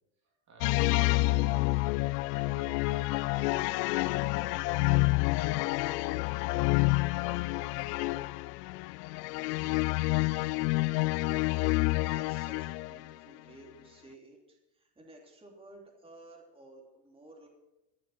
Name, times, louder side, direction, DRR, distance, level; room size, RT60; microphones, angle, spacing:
voice 1, 0.2-7.5, right 4 dB, 35° right, 1 dB, 2.9 m, -56 dB
sound 1, 0.6-13.1, left 23 dB, 75° left, 0.5 m, -28 dB
voice 2, 12.0-17.5, right 2 dB, 10° right, 0 dB, 2.9 m, -54 dB
14.5 x 6.4 x 9.1 m, 0.95 s
supercardioid pair, 120°, 48 cm